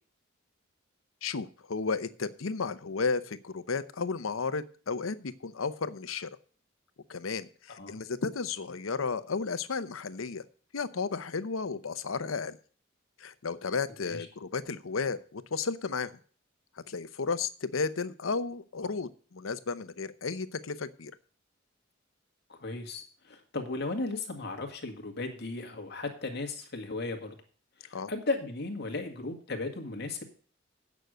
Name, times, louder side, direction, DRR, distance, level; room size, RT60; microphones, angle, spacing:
voice 1, 1.2-6.3 7.1-10.4 10.7-12.6 13.2-16.1 16.9-21.1 27.9-28.1, left 4 dB, 85° left, 14 dB, 0.8 m, -33 dB
voice 2, 22.5-27.4 27.8-30.2, left 3 dB, 55° left, 5 dB, 1.9 m, -36 dB
9.2 x 6.4 x 7.8 m, 0.43 s
head